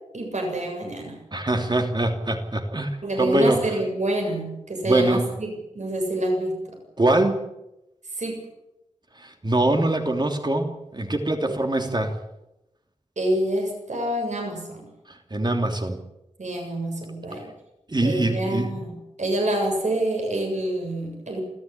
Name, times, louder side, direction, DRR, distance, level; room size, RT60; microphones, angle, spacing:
voice 1, 0.1-1.2 3.0-5.5 5.7-6.8 8.1-8.4 13.2-14.8 16.4-17.5 18.0-21.4, right 1 dB, 70° right, 2 dB, 7.6 m, -27 dB
voice 2, 1.3-2.9 3.2-3.6 4.8-5.3 7.0-7.4 9.2-12.2 15.1-16.0 17.9-18.7, right 1 dB, 35° right, 5 dB, 3.1 m, -23 dB
28.5 x 14.5 x 8.8 m, 0.89 s
wide cardioid pair, 85°, 12 cm